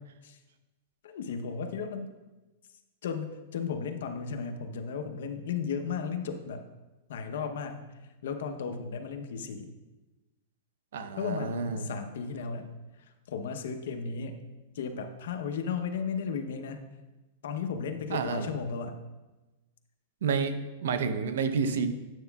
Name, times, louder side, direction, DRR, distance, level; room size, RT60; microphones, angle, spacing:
voice 1, 1.0-2.1 3.0-6.6 7.1-7.8 8.2-9.7 11.2-12.7 13.0-14.4 14.7-16.8 17.4-19.0 21.7-21.8, left 6 dB, 80° left, 6 dB, 0.8 m, -35 dB
voice 2, 10.9-11.8 18.1-18.5 20.2-21.9, right 5 dB, 85° right, 10 dB, 0.6 m, -30 dB
9.2 x 7.9 x 2.3 m, 1.1 s
supercardioid pair, 150°, 0 cm